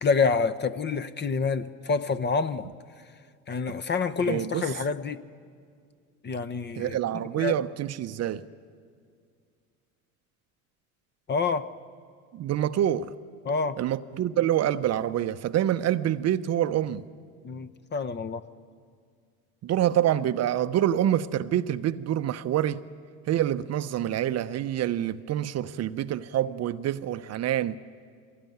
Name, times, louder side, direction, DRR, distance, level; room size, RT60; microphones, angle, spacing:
voice 1, 0.0-2.7 3.5-5.2 6.2-7.6 11.3-11.7 13.4-13.8 17.4-18.4, left 4 dB, 25° left, 0.9 m, -27 dB
voice 2, 4.3-4.6 6.8-8.4 12.3-13.1 13.8-17.0 19.6-22.8 23.3-27.8, right 11 dB, 35° right, 0.7 m, -26 dB
24.0 x 18.0 x 9.4 m
hypercardioid pair, 90°, 42 cm